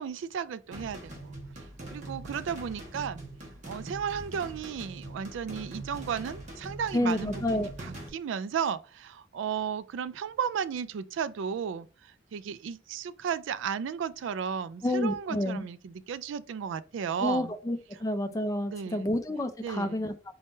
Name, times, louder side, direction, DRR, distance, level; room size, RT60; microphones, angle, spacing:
voice 1, 0.0-1.4 1.9-3.2 3.7-17.5 18.7-19.1 19.6-20.0, right 7 dB, 75° right, 0.3 m, -34 dB
sound 1, 0.7-8.1, right 1 dB, 40° right, 1.2 m, -42 dB
voice 2, 6.9-7.7 14.8-15.6 17.2-20.1, left 1 dB, 15° left, 0.5 m, -29 dB
4.1 x 3.6 x 2.6 m
head